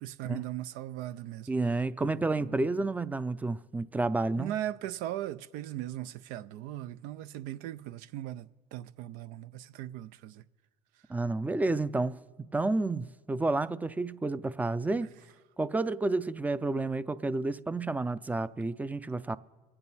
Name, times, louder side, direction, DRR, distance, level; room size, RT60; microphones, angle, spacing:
voice 1, 0.0-2.7 4.4-10.4 15.0-15.1, right 13 dB, 80° right, 0.5 m, -39 dB
voice 2, 1.5-4.5 11.1-12.2 12.5-15.1 15.6-19.4, right 2 dB, 10° right, 0.4 m, -30 dB
23.0 x 8.8 x 4.1 m
cardioid pair, 105°, 14 cm